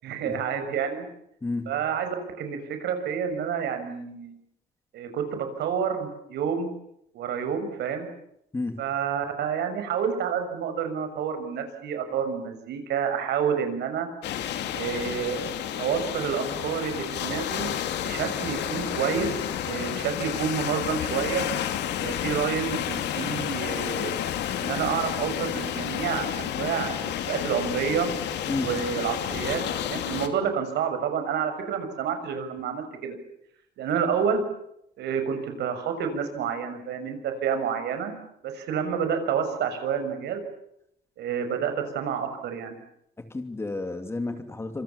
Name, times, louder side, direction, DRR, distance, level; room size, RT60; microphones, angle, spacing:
voice 1, 0.0-1.1 1.7-4.4 4.9-6.7 7.1-8.1 8.8-14.1 14.7-15.5 15.8-17.7 18.0-19.3 19.6-21.5 22.0-24.1 24.6-28.1 28.6-33.2 33.8-34.4 35.0-38.1 38.4-40.4 41.2-42.8, right 7 dB, 80° right, 7 dB, 6.3 m, -29 dB
voice 2, 1.4-1.8 8.5-8.9 28.5-28.7 43.2-44.8, left 2 dB, 15° left, 7 dB, 2.7 m, -32 dB
sound 1, 14.2-30.3, left 10 dB, 85° left, 2.9 m, -31 dB
26.5 x 26.5 x 7.1 m, 0.77 s
cardioid pair, 165°, 17 cm